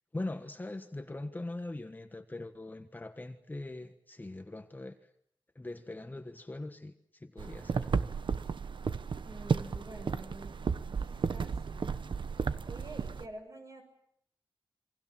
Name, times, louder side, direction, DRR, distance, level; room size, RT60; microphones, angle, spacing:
voice 1, 0.1-5.0 5.5-7.9, left 2 dB, 20° left, 1.4 m, -41 dB
sound 1, 7.4-13.2, right 5 dB, 65° right, 1.1 m, -33 dB
voice 2, 9.2-10.5 11.0-11.8 12.7-13.8, right 2 dB, 35° right, 7.5 m, -47 dB
29.0 x 23.5 x 7.5 m
wide cardioid pair, 120°, 9 cm